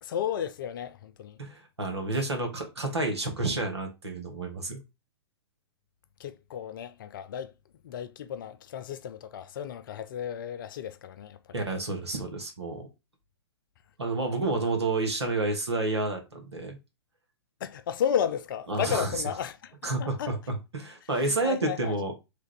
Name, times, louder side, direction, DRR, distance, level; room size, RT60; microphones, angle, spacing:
voice 1, 0.0-1.4 6.2-7.5 7.8-11.6 17.6-20.3 21.0-21.9, left 9 dB, 50° left, 0.4 m, -33 dB
voice 2, 1.4-4.8 11.5-12.9 14.0-16.8 18.7-19.1 19.8-22.1, right 2 dB, 80° right, 1.2 m, -30 dB
3.3 x 2.4 x 3.2 m
figure-of-eight pair, 115°, 14 cm